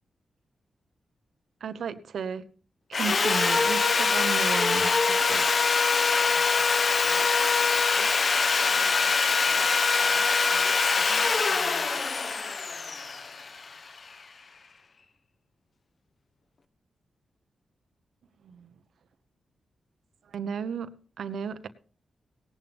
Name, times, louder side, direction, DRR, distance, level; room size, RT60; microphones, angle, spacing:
voice 1, 1.6-2.4 2.9-5.5 18.4-18.7 20.3-20.9 21.2-21.7, right 6 dB, 80° right, 12 dB, 1.1 m, -34 dB
Sawing, 2.9-14.0, left 4 dB, 50° left, 0.9 m, -24 dB
voice 2, 6.1-12.6, left 3 dB, 80° left, 4 dB, 4.3 m, -47 dB
18.0 x 11.5 x 3.5 m, 0.39 s
cardioid pair, 70°, 0 cm